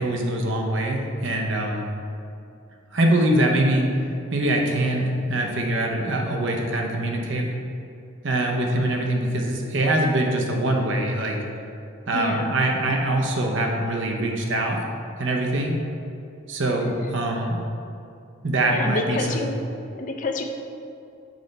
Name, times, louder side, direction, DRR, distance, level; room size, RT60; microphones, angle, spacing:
voice 1, 0.0-1.9 2.9-3.9 4.3-7.5 8.2-11.4 12.1-14.8 15.2-15.7 16.5-17.6 18.4-19.4, right 1 dB, 60° right, 1 dB, 0.8 m, -23 dB
voice 2, 12.1-12.6 18.7-19.7 19.9-20.4, left 2 dB, 35° left, 4 dB, 0.4 m, -28 dB
6.4 x 3.2 x 5.2 m, 2.6 s
head